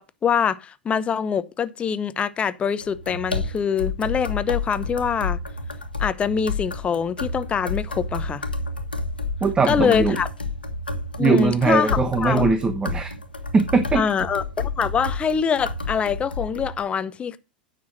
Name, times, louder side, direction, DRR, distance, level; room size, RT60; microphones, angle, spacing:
voice 1, 0.0-5.4 6.0-8.5 9.6-10.3 11.2-11.9 12.2-12.5 13.9-17.4, left 7 dB, 25° left, 0.8 m, -24 dB
sound 1, 2.8-16.8, left 3 dB, 90° left, 1.4 m, -30 dB
voice 2, 9.4-10.2 11.2-13.1 13.5-14.0, right 4 dB, 15° right, 1.1 m, -20 dB
9.4 x 6.1 x 6.3 m
figure-of-eight pair, 95°, 5 cm